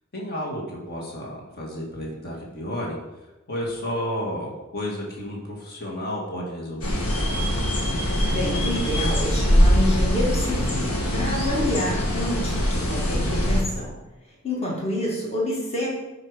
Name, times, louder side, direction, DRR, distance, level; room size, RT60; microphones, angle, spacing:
voice 1, 0.1-3.0 3.5-7.0, left 1 dB, 45° left, -2 dB, 1.9 m, -31 dB
sound 1, 6.8-13.6, equal, 90° left, 1.6 m, -22 dB
voice 2, 8.3-14.0 14.4-15.9, left 1 dB, 30° left, -3 dB, 1.9 m, -28 dB
9.9 x 4.8 x 4.9 m, 1.0 s
head